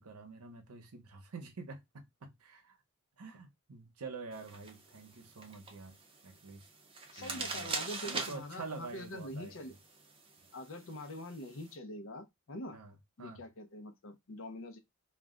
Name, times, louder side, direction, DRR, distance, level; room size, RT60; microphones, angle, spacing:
voice 1, 0.0-2.8 3.2-6.0 6.2-6.6 7.2-7.8 8.0-9.8 12.7-13.4, right 4 dB, 90° right, 0.8 m, -47 dB
sound 1, 4.3-11.7, right 4 dB, 25° right, 0.5 m, -44 dB
voice 2, 7.1-9.7 10.5-12.8 13.2-14.8, left 1 dB, 60° left, 0.5 m, -44 dB
2.3 x 2.1 x 3.6 m
head